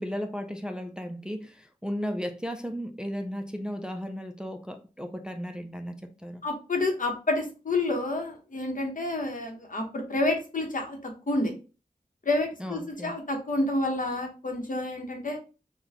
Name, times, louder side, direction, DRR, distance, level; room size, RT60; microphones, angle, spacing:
voice 1, 0.0-6.5 12.6-13.2, equal, 5° right, 0.3 m, -35 dB
voice 2, 6.4-11.5 12.3-15.4, left 2 dB, 65° left, 0.9 m, -29 dB
3.9 x 2.2 x 2.7 m
wide cardioid pair, 55°, 15 cm